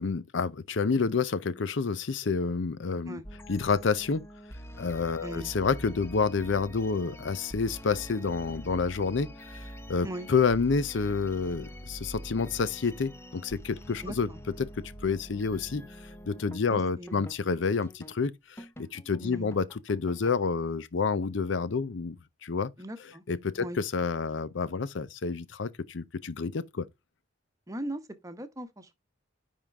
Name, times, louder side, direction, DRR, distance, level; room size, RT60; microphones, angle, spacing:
voice 1, 0.0-3.2 3.5-4.2 4.8-14.3 14.6-14.7 15.0-15.8 16.3-22.2 22.4-22.7 23.3-26.9, left 4 dB, 70° left, 0.6 m, -29 dB
sound 1, 3.2-17.4 17.8-18.2 18.6-20.7, equal, 15° left, 0.7 m, -45 dB
voice 2, 14.0-14.4 16.7-17.3 19.2-19.5 22.8-23.2 23.6-23.8 27.7-29.0, right 1 dB, 15° right, 1.0 m, -39 dB
10.0 x 3.7 x 3.4 m
head